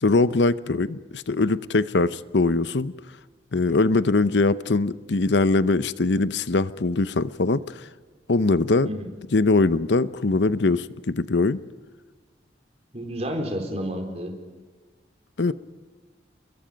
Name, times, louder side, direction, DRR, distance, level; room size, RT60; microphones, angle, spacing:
voice 1, 0.0-2.9 3.5-7.6 8.3-8.9 9.3-11.6 15.4-15.5, left 3 dB, 75° left, 15 dB, 0.8 m, -22 dB
voice 2, 12.9-14.3, equal, 35° right, 4 dB, 4.2 m, -30 dB
29.5 x 23.0 x 5.2 m, 1.4 s
head